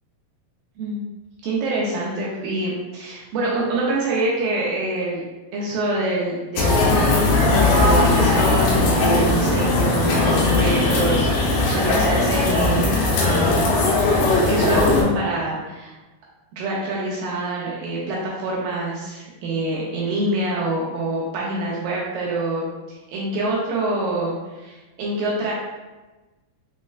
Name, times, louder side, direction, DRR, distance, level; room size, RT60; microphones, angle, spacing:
voice 1, 1.4-5.2 5.5-6.8 7.5-13.7 14.5-15.9 16.5-22.7 23.1-25.5, right 2 dB, 80° right, -4 dB, 2.1 m, -25 dB
sound 1, 6.6-15.0, left 2 dB, 80° left, 2.5 m, -18 dB
6.2 x 2.1 x 2.3 m, 1.2 s
omnidirectional pair, 4.6 m